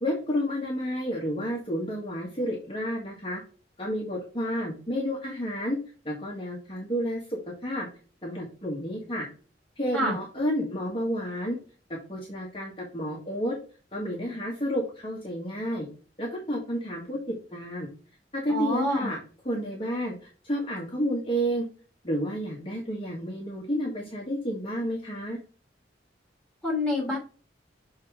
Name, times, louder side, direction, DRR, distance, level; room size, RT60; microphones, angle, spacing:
voice 1, 0.0-3.4 3.8-5.8 6.0-7.9 8.2-9.3 9.8-11.6 11.9-13.6 13.9-15.9 16.2-17.2 17.5-17.9 18.3-19.2 19.4-20.1 20.4-21.7 22.0-25.4, equal, 30° left, -3 dB, 1.7 m, -30 dB
voice 2, 18.5-19.1 26.6-27.2, left 1 dB, 5° left, -4 dB, 3.3 m, -27 dB
6.8 x 3.9 x 4.9 m, 0.38 s
head